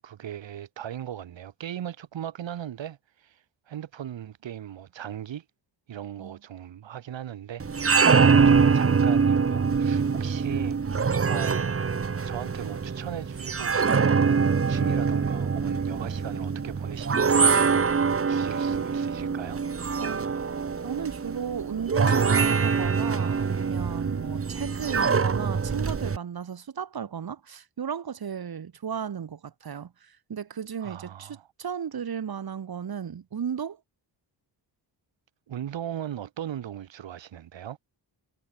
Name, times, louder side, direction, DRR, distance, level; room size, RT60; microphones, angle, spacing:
voice 1, 0.0-3.4 3.7-5.4 5.9-11.7 12.2-14.3 14.7-19.6 30.8-31.5 35.5-37.8, right 10 dB, 85° right, 4.0 m, -38 dB
sound 1, 7.6-26.2, right 5 dB, 30° right, 1.9 m, -24 dB
voice 2, 20.0-20.3 20.8-33.8, right 7 dB, 55° right, 6.9 m, -35 dB
sound 2, 22.1-24.3, left 9 dB, 70° left, 6.8 m, -47 dB
wide cardioid pair, 150°, 43 cm